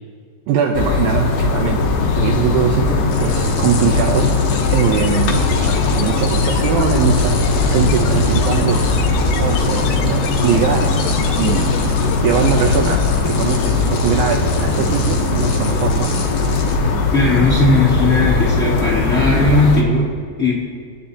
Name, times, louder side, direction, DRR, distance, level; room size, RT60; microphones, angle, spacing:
voice 1, 0.5-1.8 2.2-4.3 4.6-8.8 9.4-10.9 11.4-11.8 12.2-16.1, right 7 dB, 75° right, 3 dB, 2.3 m, -21 dB
sound 1, 0.7-19.8, left 3 dB, 70° left, 2.6 m, -18 dB
sound 2, 3.1-16.8, left 4 dB, 55° left, 2.4 m, -30 dB
sound 3, 4.5-12.9, left 6 dB, 85° left, 3.0 m, -29 dB
voice 2, 17.1-20.1 20.4-20.5, left 2 dB, 25° left, -9 dB, 2.4 m, -16 dB
24.0 x 11.0 x 2.8 m, 2.2 s
omnidirectional pair, 4.7 m